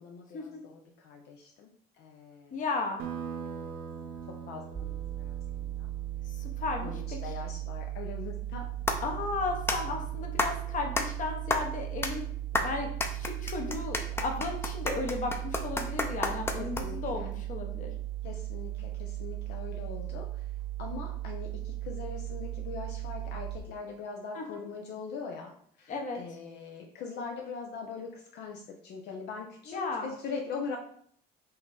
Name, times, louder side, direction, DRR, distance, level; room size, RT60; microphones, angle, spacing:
voice 1, 0.0-1.7 2.0-2.6 4.5-5.4 5.8-5.9 6.8-8.6 16.6-17.3 18.2-20.3 20.8-25.5 25.8-30.8, left 5 dB, 75° left, 1 dB, 0.7 m, -41 dB
voice 2, 2.5-3.0 6.4-7.3 9.0-12.2 12.6-17.9 24.3-24.6 25.9-26.2 29.7-30.1, left 3 dB, 50° left, 3 dB, 1.0 m, -35 dB
sound 1, 3.0-8.1, right 6 dB, 90° right, 0.8 m, -43 dB
sound 2, 4.7-23.6, right 14 dB, 30° right, 0.8 m, -37 dB
sound 3, 8.4-17.2, left 2 dB, 15° left, 0.5 m, -33 dB
5.6 x 2.7 x 3.4 m, 0.62 s
cardioid pair, 110°, 17 cm